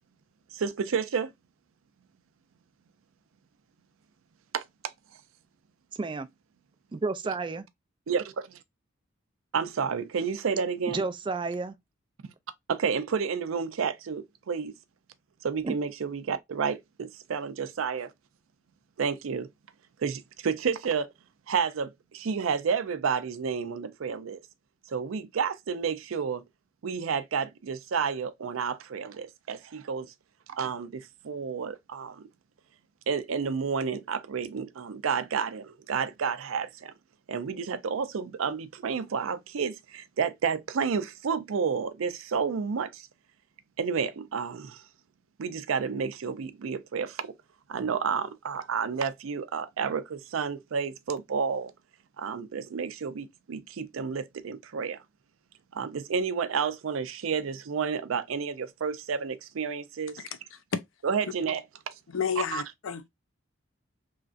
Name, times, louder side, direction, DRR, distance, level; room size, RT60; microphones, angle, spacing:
voice 1, 0.5-1.3 4.5-4.6 8.1-8.6 9.5-11.0 12.2-12.3 12.7-14.7 15.4-18.1 19.0-19.5 20.0-21.1 21.5-24.4 24.9-26.4 26.8-30.1 30.5-32.2 33.1-36.9 37.3-43.1 43.8-44.8 45.4-47.3 47.7-51.7 52.2-55.0 55.7-60.2 61.0-61.9 62.5-62.6, right 6 dB, 90° right, 0.4 m, -30 dB
voice 2, 5.9-6.3 6.9-7.7 10.9-11.8 15.6-15.7, right 3 dB, 25° right, 0.3 m, -31 dB
voice 3, 62.1-63.1, left 7 dB, 80° left, 0.5 m, -31 dB
3.1 x 2.5 x 2.4 m
head